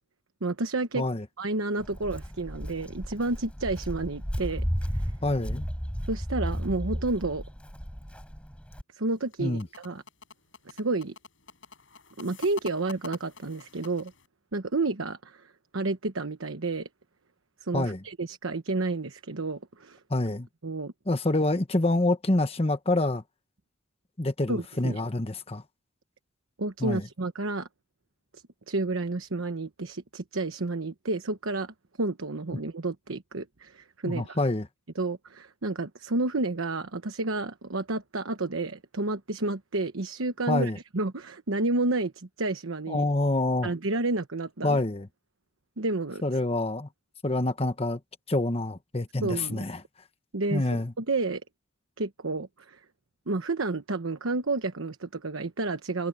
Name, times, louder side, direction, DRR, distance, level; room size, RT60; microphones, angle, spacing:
voice 1, 0.4-1.0 1.4-4.7 4.9-5.1 6.1-7.4 8.9-9.6 9.8-10.0 10.6-11.1 12.2-14.1 14.5-16.9 17.6-20.0 20.6-20.9 24.5-25.0 26.6-27.7 28.7-34.4 34.9-43.0 43.6-44.8 45.8-46.2 49.2-49.6 50.3-51.4 52.0-52.8 53.3-56.1, right 2 dB, 85° right, 1.1 m, -30 dB
Walk footsteps, 1.8-8.8, equal, 5° left, 5.0 m, -34 dB
voice 2, 5.2-5.7 9.4-9.7 17.7-18.0 20.1-20.5 21.1-23.2 24.2-25.6 26.8-27.0 34.1-34.7 40.5-40.8 42.9-43.7 44.6-45.1 46.2-46.9 47.2-48.0 48.3-49.8 50.5-50.9, left 2 dB, 30° left, 1.2 m, -26 dB
sound 1, 9.1-14.3, left 4 dB, 70° left, 6.7 m, -47 dB
head